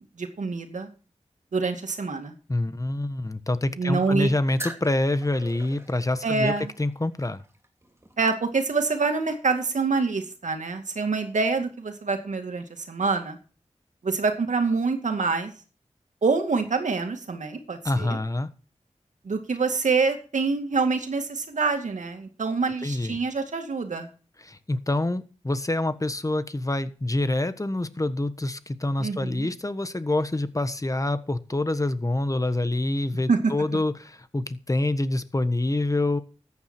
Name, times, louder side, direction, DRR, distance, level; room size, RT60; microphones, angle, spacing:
voice 1, 0.2-0.9 1.5-2.4 3.8-4.3 6.2-6.7 8.2-13.4 14.0-15.5 16.2-18.2 19.2-24.1 29.0-29.5 33.3-33.5, right 4 dB, 85° right, 6 dB, 2.2 m, -26 dB
voice 2, 2.5-6.5 6.8-7.4 17.8-18.5 22.8-23.2 24.5-36.2, left 2 dB, 25° left, 12 dB, 1.4 m, -26 dB
sound 1, 4.6-9.0, right 1 dB, 20° right, 2.8 m, -43 dB
14.0 x 9.7 x 4.5 m, 0.37 s
wide cardioid pair, 55°, 12 cm